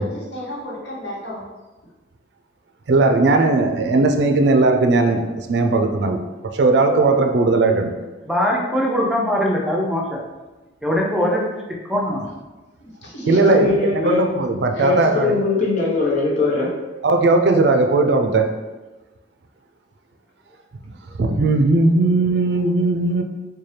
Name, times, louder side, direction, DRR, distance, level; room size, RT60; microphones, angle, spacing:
voice 1, 0.0-1.4 12.8-13.6 14.7-14.9, equal, 70° left, -4 dB, 1.0 m, -32 dB
voice 2, 2.9-6.2 6.5-7.9 13.3-15.4 17.0-18.5 21.2-23.2, right 3 dB, 65° right, 5 dB, 0.4 m, -17 dB
voice 3, 8.3-10.2 10.8-11.5 11.9-12.3, equal, ahead, -3 dB, 0.5 m, -21 dB
voice 4, 13.4-14.3 14.8-16.7, left 4 dB, 40° left, -5 dB, 0.9 m, -21 dB
4.1 x 2.2 x 3.2 m, 1.1 s
head